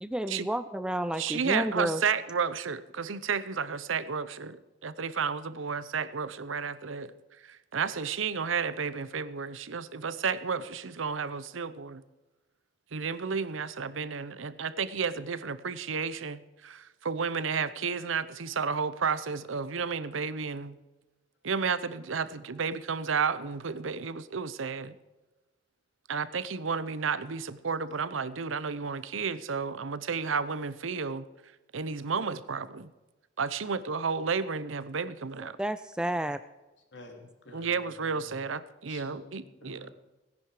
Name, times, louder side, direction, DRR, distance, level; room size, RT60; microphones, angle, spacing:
voice 1, 0.0-2.0 35.6-36.4, right 1 dB, 5° right, 12 dB, 0.3 m, -31 dB
voice 2, 1.2-7.1 7.4-12.0 12.9-20.8 21.4-25.0 26.1-31.3 31.7-32.9 33.4-35.6 37.5-39.9, right 5 dB, 85° right, 15 dB, 0.8 m, -32 dB
voice 3, 36.9-37.7 38.1-38.3 38.9-39.9, left 2 dB, 65° left, 2 dB, 2.9 m, -49 dB
17.5 x 10.5 x 4.9 m, 1.1 s
head